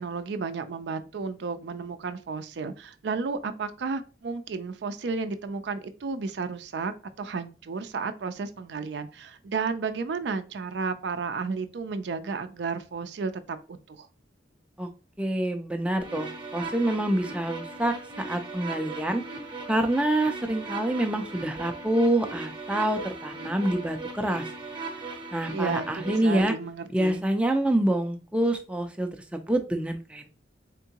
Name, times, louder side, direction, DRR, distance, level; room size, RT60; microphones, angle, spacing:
voice 1, 0.0-6.9 7.2-14.1 25.5-27.2, right 4 dB, 65° right, 0.4 m, -32 dB
voice 2, 15.2-17.9 18.3-19.2 19.7-24.4 25.3-26.5 26.9-30.3, right 1 dB, 5° right, 0.4 m, -26 dB
sound 1, 16.0-26.4, right 3 dB, 25° right, 0.8 m, -38 dB
3.7 x 3.5 x 2.8 m
head